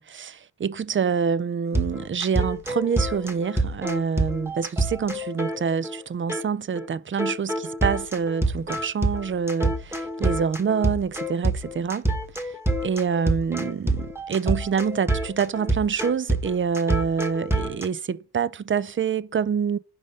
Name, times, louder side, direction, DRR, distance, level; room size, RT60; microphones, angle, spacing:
voice 1, 0.0-12.0 12.8-19.8, right 6 dB, 30° right, 0.4 m, -26 dB
sound 1, 1.7-6.0 6.3-6.4 6.8-6.9 7.2-17.9, right 2 dB, 5° right, 1.1 m, -26 dB
5.0 x 3.6 x 5.3 m
cardioid pair, 40°, 41 cm